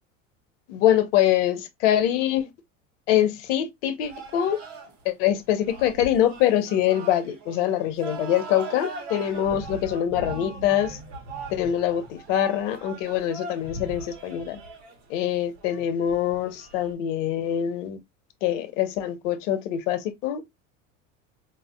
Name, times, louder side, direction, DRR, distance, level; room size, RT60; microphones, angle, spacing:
voice 1, 0.7-2.5 3.1-4.6 5.0-11.0 11.5-14.6 15.1-18.0 18.4-20.4, left 11 dB, 70° left, 0.8 m, -24 dB
sound 1, 4.0-16.9, right 2 dB, 70° right, 1.4 m, -40 dB
4.5 x 2.5 x 2.2 m
hypercardioid pair, 80°, 39 cm